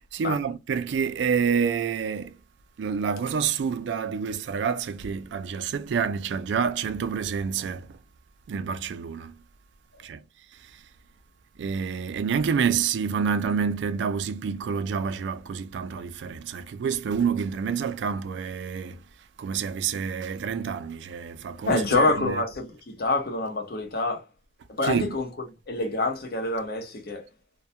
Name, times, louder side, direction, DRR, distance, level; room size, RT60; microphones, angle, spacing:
voice 1, 0.1-2.4 2.8-8.0 8.5-9.3 10.0-10.2 11.6-19.0 19.4-22.4 24.8-25.2, right 6 dB, 75° right, 0.3 m, -28 dB
voice 2, 21.7-24.2 24.7-25.3 25.7-27.3, left 2 dB, 55° left, 0.7 m, -26 dB
2.2 x 2.1 x 2.7 m
head